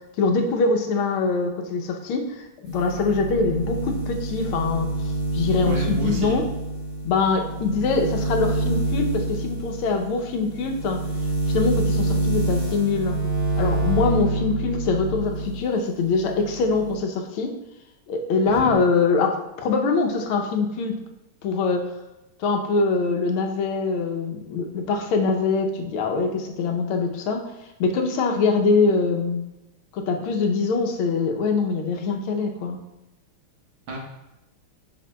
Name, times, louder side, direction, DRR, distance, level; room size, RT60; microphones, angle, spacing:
voice 1, 0.2-4.9 5.3-6.4 7.0-11.0 11.5-13.2 13.6-17.5 18.1-21.0 21.4-21.8 22.4-27.4 27.8-29.4 29.9-32.8, left 4 dB, 90° left, 3 dB, 1.7 m, -23 dB
sound 1, 2.6-15.6 15.9-16.9, right 2 dB, 45° right, 1.7 m, -27 dB
voice 2, 5.7-6.4 18.5-18.7 33.9-34.0, right 1 dB, 85° right, -1 dB, 2.1 m, -30 dB
7.8 x 6.0 x 2.2 m, 0.93 s
omnidirectional pair, 2.3 m